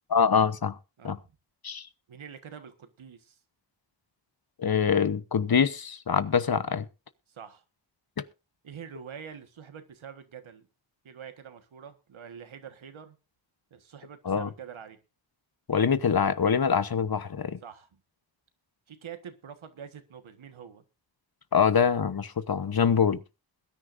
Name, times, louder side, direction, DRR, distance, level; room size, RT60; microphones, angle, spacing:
voice 1, 0.1-0.8 1.0-1.2 1.6-1.9 4.6-6.9 8.2-8.3 14.2-14.5 15.7-17.6 21.5-23.2, left 6 dB, 50° left, 1.1 m, -24 dB
voice 2, 1.0-1.4 2.1-3.4 7.3-7.6 8.6-10.7 11.0-13.2 13.7-15.0 17.6-18.0 18.9-20.8, right 7 dB, 90° right, 1.6 m, -45 dB
21.5 x 10.0 x 2.6 m
cardioid pair, 55°, 46 cm